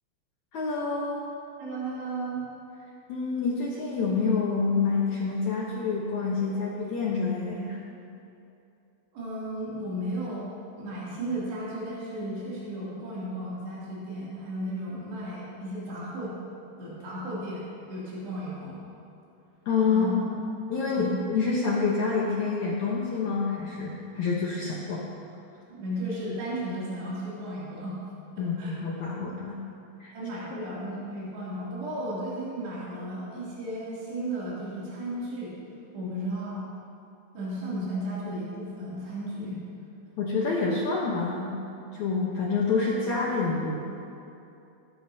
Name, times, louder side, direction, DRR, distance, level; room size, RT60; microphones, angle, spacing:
voice 1, 0.5-1.2 3.1-7.8 19.6-25.0 28.4-29.6 30.0-30.1 40.2-41.6 41.9-43.8, left 4 dB, 75° left, -4 dB, 1.7 m, -27 dB
voice 2, 1.6-2.4 9.1-10.5 10.8-16.4 16.8-18.8 19.9-20.1 20.9-21.2 25.7-28.0 28.6-28.7 29.2-29.3 30.1-35.6 35.9-36.7 37.3-39.6, right 1 dB, 90° right, -8 dB, 5.0 m, -34 dB
17.5 x 13.5 x 2.8 m, 2.8 s
omnidirectional pair, 4.7 m